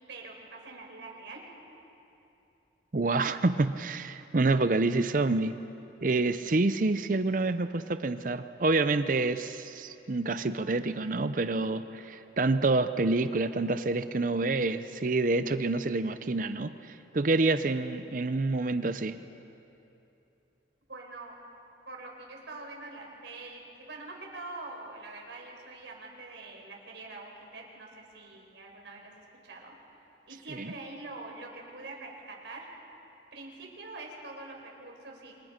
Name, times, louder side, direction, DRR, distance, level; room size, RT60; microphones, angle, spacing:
voice 1, 0.1-1.4 20.9-21.3 21.9-27.9 28.1-29.7 30.3-32.7 33.3-35.4, right 2 dB, 75° right, 0 dB, 4.9 m, -44 dB
voice 2, 2.9-5.6 6.0-19.2 30.5-30.7, right 3 dB, 45° right, 11 dB, 0.6 m, -27 dB
28.5 x 26.0 x 5.2 m, 2.9 s
head